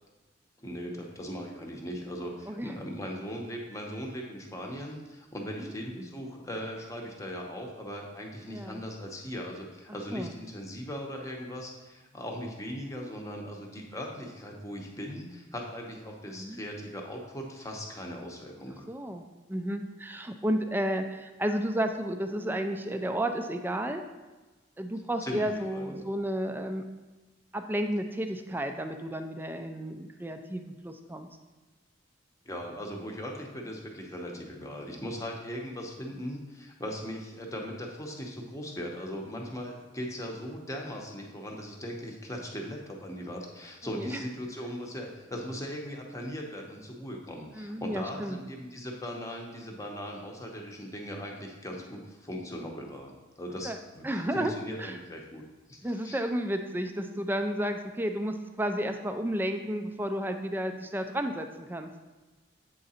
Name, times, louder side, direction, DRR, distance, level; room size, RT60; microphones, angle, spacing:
voice 1, 0.6-18.9 25.2-26.1 32.4-55.4 55.7-56.2, equal, 15° left, 0 dB, 0.8 m, -39 dB
voice 2, 8.5-8.8 10.1-10.3 16.3-16.6 18.9-19.2 19.5-24.0 24.8-26.8 27.5-31.3 43.8-44.2 47.6-48.4 53.6-53.8 54.0-54.5 54.8-55.0 55.8-61.9, right 1 dB, 10° right, 6 dB, 0.4 m, -32 dB
8.0 x 3.8 x 4.2 m, 1.2 s
head